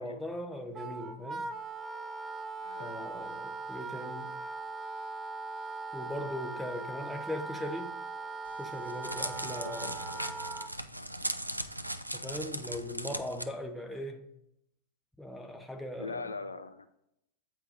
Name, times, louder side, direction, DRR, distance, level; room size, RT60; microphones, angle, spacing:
voice 1, 0.0-1.5 2.8-4.3 5.9-7.9 8.6-10.0 12.1-14.3 15.2-16.3, left 1 dB, 5° left, 0.9 m, -39 dB
Wind instrument woodwind instrument, 0.7-10.7, right 3 dB, 20° right, 0.5 m, -40 dB
voice 2, 2.6-3.3 9.4-10.2 10.5-10.7 10.9-11.1 16.0-16.9, left 3 dB, 80° left, 0.4 m, -43 dB
Crackle, 8.5-13.4, right 1 dB, 85° right, 0.4 m, -38 dB
7.9 x 4.6 x 4.0 m
figure-of-eight pair, 90°, 0 cm